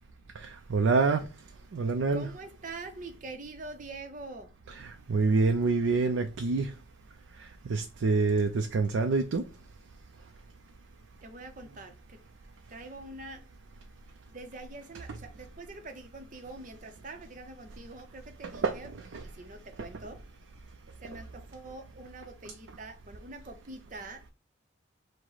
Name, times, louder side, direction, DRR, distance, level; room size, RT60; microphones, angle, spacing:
voice 1, 0.4-1.3 1.7-2.3 4.8-6.7 7.4-9.4 18.5-18.8 19.1-19.2, right 4 dB, 85° right, 0.4 m, -27 dB
voice 2, 2.1-4.6 10.2-10.4 11.2-12.2 12.7-13.5 14.3-18.9 19.2-20.3 21.0-24.3, right 2 dB, 40° right, 0.6 m, -45 dB
4.7 x 2.1 x 4.0 m
head